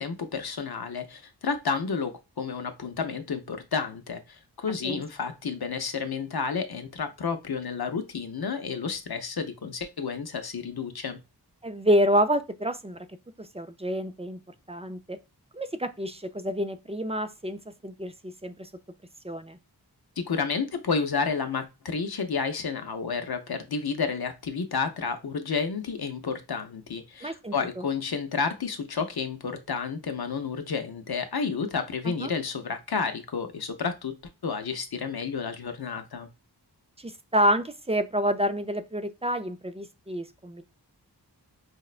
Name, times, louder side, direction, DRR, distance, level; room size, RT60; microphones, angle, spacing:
voice 1, 0.0-11.2 20.2-34.2 34.4-36.3, left 5 dB, 65° left, 0.6 m, -31 dB
voice 2, 11.6-13.0 13.4-14.4 14.7-15.2 15.5-18.7 19.2-19.6 27.2-27.9 32.0-32.3 37.0-40.6, equal, 15° right, 0.3 m, -28 dB
4.8 x 2.1 x 2.4 m
wide cardioid pair, 40°, 40 cm